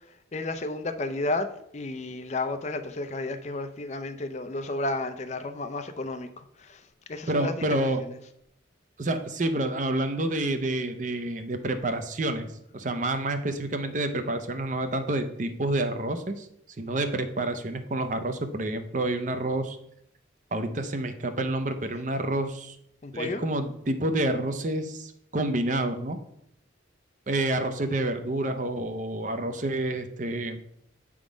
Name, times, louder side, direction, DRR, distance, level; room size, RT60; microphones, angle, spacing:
voice 1, 0.3-1.5 1.7-6.8 7.1-7.9 23.0-23.4, left 2 dB, 35° left, 9 dB, 0.5 m, -32 dB
voice 2, 7.3-8.0 9.0-12.5 12.7-16.5 16.8-19.8 20.5-22.8 23.1-26.2 27.3-30.6, right 1 dB, 40° right, 8 dB, 0.6 m, -28 dB
8.1 x 3.6 x 5.0 m, 0.74 s
head